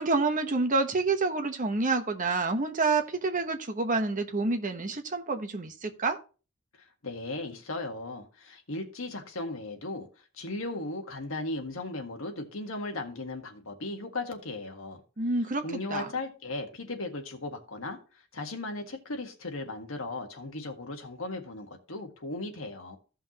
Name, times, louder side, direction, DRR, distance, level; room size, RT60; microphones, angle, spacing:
voice 1, 0.0-6.2 15.2-16.1, right 3 dB, 40° right, 1.1 m, -28 dB
voice 2, 7.0-10.1 10.3-15.0 15.6-18.0 18.3-23.0, left 2 dB, 70° left, 1.6 m, -36 dB
15.0 x 5.7 x 3.0 m
head